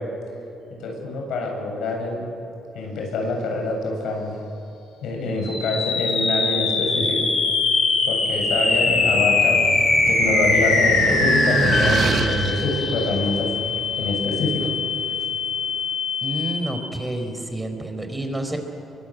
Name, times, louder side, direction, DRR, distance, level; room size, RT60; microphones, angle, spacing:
voice 1, 0.7-2.3 2.7-4.3 5.0-7.2 8.0-9.6 10.1-13.5 14.0-14.6, left 2 dB, 80° left, 1 dB, 7.7 m, -25 dB
sound 1, 5.4-16.9, left 3 dB, 65° left, 7.8 m, -22 dB
sound 2, 8.5-14.8, right 5 dB, 55° right, 1.6 m, -28 dB
voice 2, 16.2-18.6, right 1 dB, 10° right, 5 dB, 4.2 m, -29 dB
27.0 x 23.5 x 9.1 m, 2.9 s
cardioid pair, 90°, 0 cm